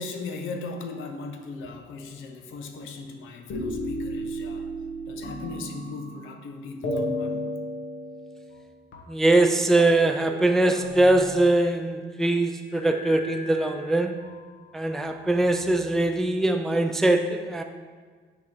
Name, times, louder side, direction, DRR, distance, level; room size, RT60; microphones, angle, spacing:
voice 1, 0.0-4.7 5.1-7.5, left 3 dB, 85° left, 5 dB, 0.7 m, -38 dB
sound 1, 3.5-6.4 6.8-8.7 8.9-9.0 9.3-9.5 9.8-10.0 10.2-11.9 12.7-14.3 15.0-15.9, equal, 70° left, 1.2 m, -34 dB
voice 2, 9.1-14.2 14.7-17.6, right 2 dB, ahead, 5 dB, 0.3 m, -22 dB
6.0 x 4.2 x 4.4 m, 1.5 s
cardioid pair, 90°, 20 cm